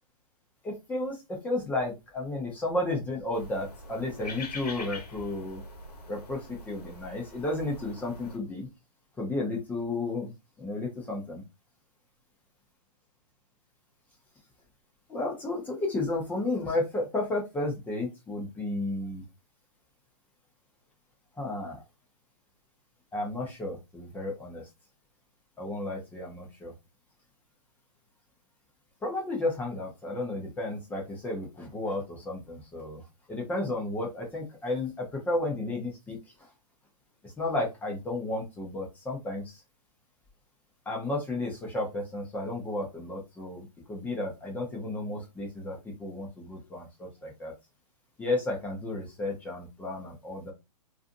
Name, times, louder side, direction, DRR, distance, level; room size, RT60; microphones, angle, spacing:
voice 1, 0.6-5.6 6.1-6.4 6.7-8.7 9.2-10.3 10.6-11.4 15.1-19.2 21.4-21.8 23.1-24.6 25.6-26.7 29.0-33.0 33.3-36.2 37.4-39.4 40.9-47.5 48.2-50.5, left 2 dB, 10° left, -1 dB, 0.7 m, -33 dB
sound 1, 3.3-8.4, left 2 dB, 80° left, 1.0 m, -44 dB
2.6 x 2.4 x 2.5 m, 0.24 s
hypercardioid pair, 135°, 20 cm